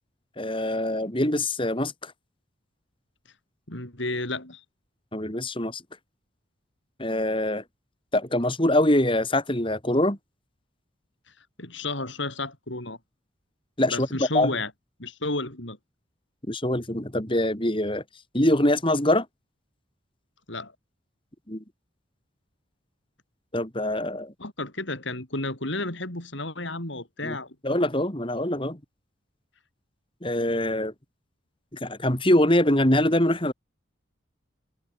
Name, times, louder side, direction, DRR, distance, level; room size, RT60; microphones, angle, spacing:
voice 1, 0.4-2.1 5.1-5.8 7.0-7.6 8.1-10.2 13.8-14.1 14.3-14.6 16.5-18.0 18.3-19.3 21.5-21.6 23.5-24.3 27.2-27.4 27.6-28.8 30.2-30.9 31.7-33.5, left 1 dB, 25° left, 3.5 m, -24 dB
voice 2, 3.7-4.6 11.6-13.0 13.9-14.7 15.0-15.8 20.5-20.7 24.4-27.6, left 2 dB, 65° left, 5.6 m, -32 dB
head